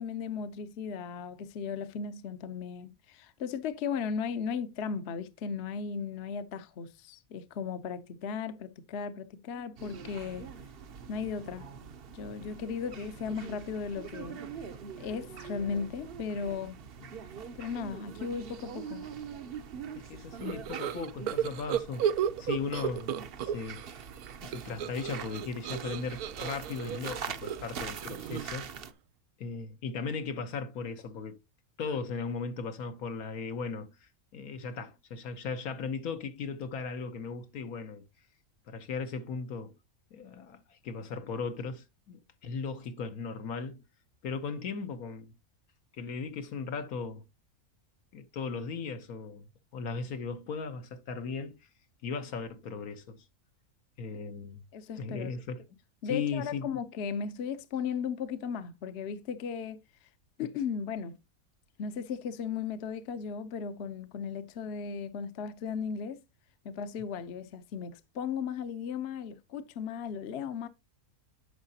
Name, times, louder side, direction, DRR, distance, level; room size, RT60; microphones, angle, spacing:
voice 1, 0.0-10.5 11.1-11.7 12.1-14.4 15.0-16.8 17.6-19.1 54.7-55.3 56.0-59.8 60.4-61.2 61.8-66.2 66.6-70.7, left 6 dB, 55° left, 0.9 m, -36 dB
sound 1, 9.8-28.9, right 7 dB, 55° right, 0.7 m, -44 dB
voice 2, 19.9-23.8 24.4-28.7 29.4-31.4 31.8-38.0 38.7-39.7 40.1-43.8 44.2-45.3 46.0-47.2 48.1-49.5 49.7-51.6 52.0-53.2 54.0-54.6 55.0-55.7 56.0-56.8, left 5 dB, 75° left, 1.4 m, -37 dB
sound 2, 20.4-23.9 24.2-28.7, right 9 dB, 85° right, 1.1 m, -33 dB
9.7 x 6.5 x 2.7 m
omnidirectional pair, 1.5 m